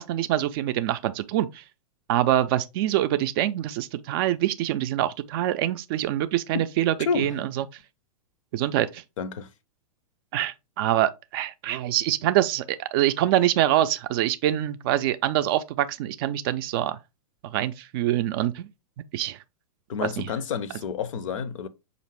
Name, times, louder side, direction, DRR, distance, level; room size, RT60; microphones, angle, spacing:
voice 1, 0.0-1.6 2.1-7.6 8.5-9.0 10.3-17.0 17.4-18.7 19.1-19.4 20.2-20.3, right 13 dB, 40° right, 0.4 m, -25 dB
voice 2, 7.0-7.4 9.2-9.5 19.9-21.7, left 6 dB, 60° left, 0.6 m, -29 dB
5.0 x 2.5 x 3.2 m
figure-of-eight pair, 105°, 19 cm